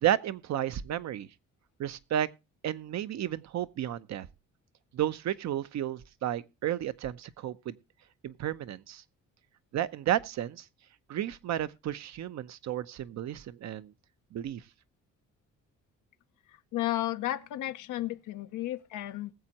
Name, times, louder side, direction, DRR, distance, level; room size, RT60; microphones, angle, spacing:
voice 1, 0.0-1.3 1.8-2.3 2.6-4.3 4.9-7.8 8.2-9.0 9.7-10.6 11.1-13.9 14.3-14.6, right 11 dB, 65° right, 0.7 m, -32 dB
voice 2, 16.5-19.3, left 15 dB, 85° left, 0.8 m, -33 dB
20.0 x 7.5 x 2.9 m
cardioid pair, 90°, 30 cm